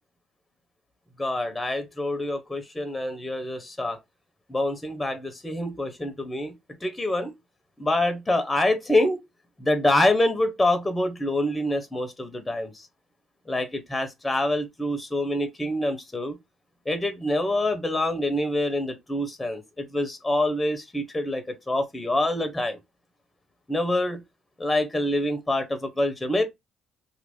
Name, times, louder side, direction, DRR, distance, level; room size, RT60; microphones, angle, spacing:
voice 1, 1.2-4.0 4.5-6.5 6.8-7.3 7.8-9.2 9.6-12.9 13.5-16.4 16.9-22.8 23.7-24.2 24.6-26.5, left 1 dB, 15° left, 0.7 m, -26 dB
2.8 x 2.5 x 3.4 m
supercardioid pair, 80°, 0 cm